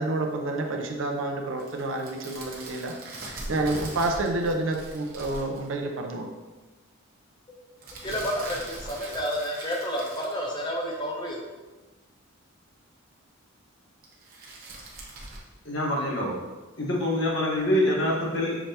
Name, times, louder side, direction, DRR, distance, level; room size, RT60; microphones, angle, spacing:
voice 1, 0.0-2.9 3.3-6.3, right 2 dB, 65° right, 2 dB, 0.6 m, -29 dB
sound 1, 1.6-5.7 7.8-11.0 14.0-15.4, right 2 dB, 40° right, 0.9 m, -41 dB
voice 2, 7.9-11.5, equal, 20° left, -1 dB, 0.6 m, -30 dB
voice 3, 15.6-16.3 16.8-18.6, left 1 dB, 55° left, -3 dB, 1.1 m, -25 dB
5.9 x 3.3 x 2.8 m, 1.2 s
head